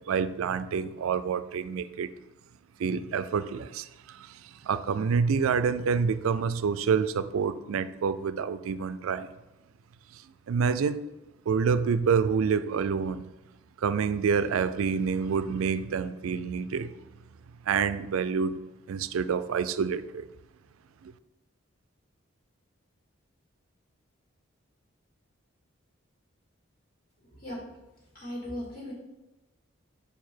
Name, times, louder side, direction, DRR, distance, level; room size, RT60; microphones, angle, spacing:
voice 1, 0.1-2.1 2.8-9.3 10.1-10.2 10.5-11.1 11.5-13.2 13.8-16.9 17.7-18.5 18.9-20.2 21.0-21.1, right 6 dB, 90° right, 13 dB, 0.4 m, -27 dB
voice 2, 27.2-27.6 28.1-28.9, left 1 dB, 45° left, -4 dB, 2.1 m, -38 dB
5.2 x 4.7 x 4.4 m, 1.0 s
head